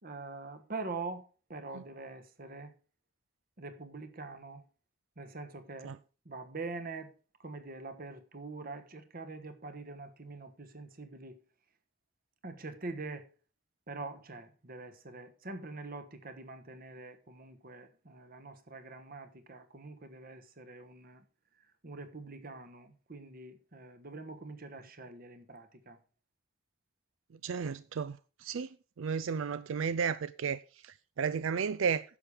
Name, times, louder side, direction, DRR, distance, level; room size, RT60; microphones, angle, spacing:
voice 1, 0.0-2.7 3.6-4.6 5.2-5.9 6.2-7.1 7.4-11.4 12.4-13.3 13.9-21.2 21.8-26.0, right 3 dB, 50° right, 1.3 m, -44 dB
voice 2, 27.4-28.7 29.0-32.0, right 6 dB, 85° right, 0.4 m, -33 dB
10.0 x 7.0 x 4.9 m
head